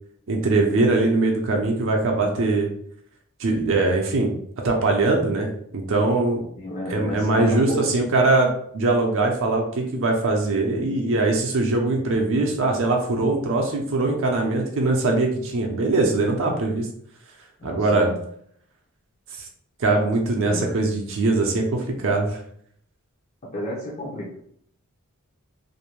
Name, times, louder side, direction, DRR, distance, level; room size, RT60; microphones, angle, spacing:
voice 1, 0.3-2.7 3.4-4.3 4.6-6.4 6.9-16.9 17.6-18.1 19.4-19.5 19.8-22.4, right 2 dB, 60° right, 1 dB, 0.5 m, -22 dB
voice 2, 6.6-8.1 17.6-18.2 20.0-20.1 20.4-20.8 23.5-24.3, left 1 dB, 30° left, -5 dB, 0.6 m, -32 dB
2.6 x 2.1 x 3.0 m, 0.65 s
head